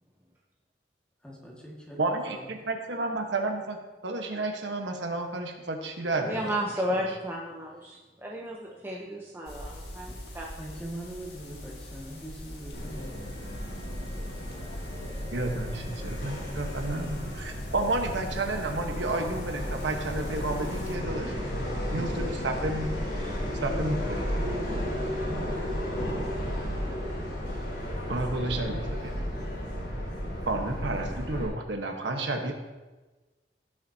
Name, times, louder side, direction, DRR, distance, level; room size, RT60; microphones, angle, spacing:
voice 1, 1.2-2.6 7.8-8.0 10.0-10.2 10.6-13.3 20.9-21.6 25.3-26.3, right 1 dB, 5° left, -3 dB, 1.9 m, -43 dB
voice 2, 2.0-3.8 4.0-6.5 15.3-21.3 21.9-22.9 23.4-24.6 28.1-29.1 30.5-32.5, right 2 dB, 85° right, 3 dB, 1.3 m, -31 dB
voice 3, 6.3-10.5, equal, 15° right, -3 dB, 0.8 m, -33 dB
sound 1, 9.4-21.0, left 1 dB, 65° left, 2.0 m, -44 dB
Subway metro underground, 12.7-31.5, equal, 85° left, 3.4 m, -33 dB
17.0 x 7.4 x 2.9 m, 1.2 s
head